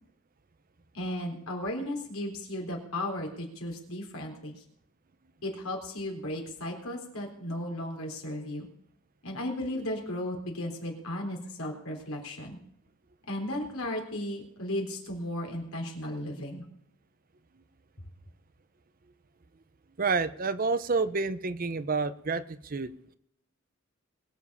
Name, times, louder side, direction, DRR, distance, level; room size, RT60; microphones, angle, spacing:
voice 1, 0.9-4.6 5.4-8.7 9.2-12.6 13.3-16.7, left 1 dB, 85° left, 2 dB, 3.8 m, -35 dB
voice 2, 20.0-22.9, right 4 dB, 40° right, 14 dB, 0.6 m, -29 dB
21.5 x 7.3 x 5.5 m, 0.72 s
head